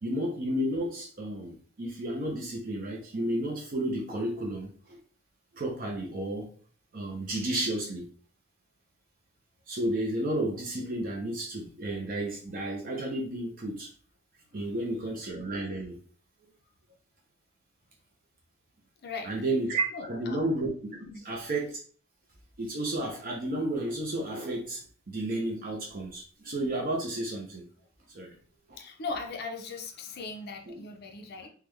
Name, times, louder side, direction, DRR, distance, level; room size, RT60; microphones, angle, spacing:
voice 1, 0.0-5.0 5.5-6.5 6.9-8.1 9.7-13.9 14.5-16.0 19.2-21.0 21.2-21.8 22.6-27.7 28.1-28.4 28.7-28.8 30.7-30.8, right 1 dB, 40° right, 0 dB, 0.6 m, -32 dB
voice 2, 19.0-19.3 19.9-20.4 21.0-21.2 28.8-31.5, left 4 dB, 50° left, 3 dB, 0.5 m, -39 dB
3.5 x 2.2 x 3.1 m, 0.43 s
head